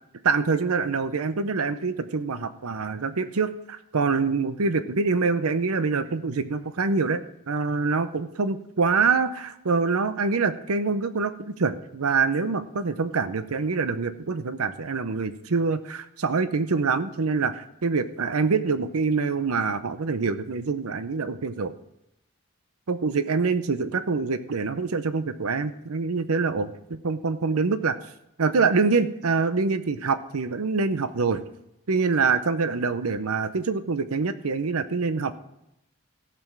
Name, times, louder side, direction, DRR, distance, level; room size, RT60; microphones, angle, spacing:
voice 1, 0.2-7.2 7.5-21.7 22.9-28.0 28.4-31.4 31.9-35.3, right 4 dB, 85° right, 12 dB, 0.7 m, -25 dB
14.5 x 6.9 x 6.0 m, 0.80 s
head